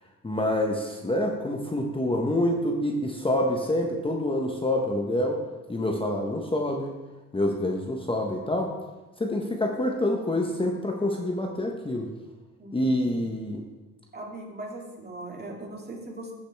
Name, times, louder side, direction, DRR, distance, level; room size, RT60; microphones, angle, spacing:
voice 1, 0.2-5.4 5.7-6.9 7.3-8.7 9.2-12.1 12.7-13.6, left 1 dB, 15° left, 1 dB, 1.0 m, -27 dB
voice 2, 12.6-13.3 14.1-16.3, right 2 dB, 35° right, -1 dB, 2.3 m, -40 dB
15.0 x 5.1 x 3.4 m, 1.1 s
cardioid pair, 90°, 30 cm